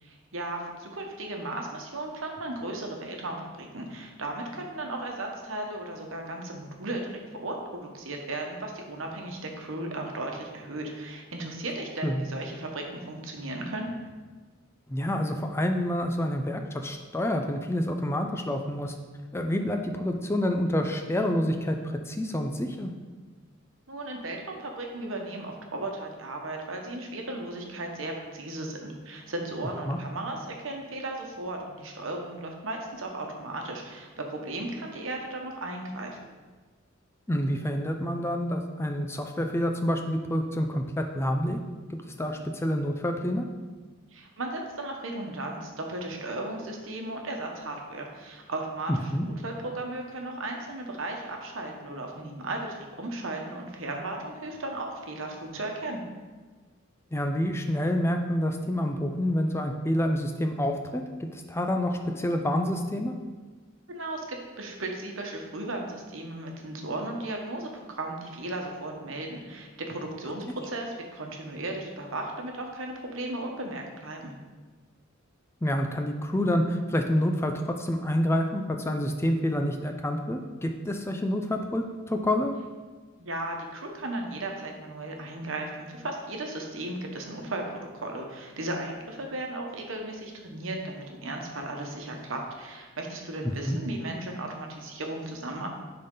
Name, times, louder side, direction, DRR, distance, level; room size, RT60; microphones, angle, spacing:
voice 1, 0.0-7.1 7.4-13.9 23.9-36.2 44.1-56.0 63.9-74.3 83.2-95.7, right 2 dB, 70° right, 2 dB, 1.1 m, -36 dB
voice 2, 14.9-18.9 19.3-22.9 29.9-30.0 37.3-41.6 41.9-43.4 49.1-49.3 57.1-63.1 75.6-82.5 93.4-93.8, left 1 dB, 10° left, 4 dB, 0.4 m, -28 dB
10.5 x 3.9 x 3.8 m, 1.3 s
head